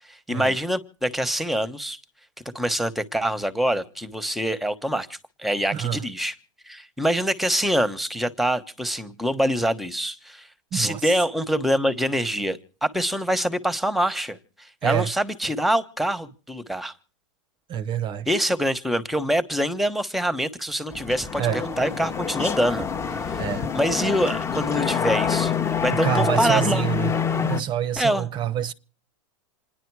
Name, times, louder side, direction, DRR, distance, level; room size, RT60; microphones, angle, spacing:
voice 1, 0.1-2.0 2.5-6.3 6.7-10.5 10.7-16.9 18.3-22.9 23.3-23.4 23.7-25.5 25.8-26.8 28.0-28.3, equal, ahead, 1.1 m, -25 dB
voice 2, 5.7-6.0 10.7-11.1 14.8-15.1 17.7-18.4 21.4-21.6 23.4-23.7 25.9-27.1 27.4-28.7, right 10 dB, 30° right, 0.7 m, -26 dB
sound 1, 20.9-27.6, left 7 dB, 15° left, 0.9 m, -26 dB
27.5 x 10.5 x 4.7 m
supercardioid pair, 135°, 16 cm